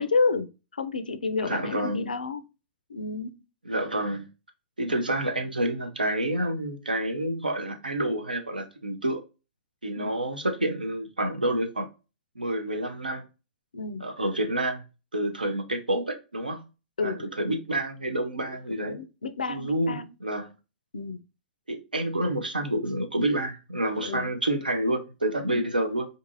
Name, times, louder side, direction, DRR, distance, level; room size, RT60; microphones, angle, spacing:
voice 1, 0.0-2.4 2.9-3.3 4.9-5.0 10.0-10.1 13.7-14.1 17.0-17.3 18.7-20.1 20.9-21.2 24.0-24.3 25.5-25.7, left 4 dB, 80° left, 0.3 m, -30 dB
voice 2, 1.4-2.1 3.7-4.3 4.8-9.2 9.8-11.9 12.4-13.2 14.0-14.8 15.1-16.7 17.0-19.0 19.5-20.5 21.7-26.1, right 1 dB, 90° right, 0.5 m, -28 dB
2.5 x 2.5 x 2.5 m
figure-of-eight pair, 105°, 5 cm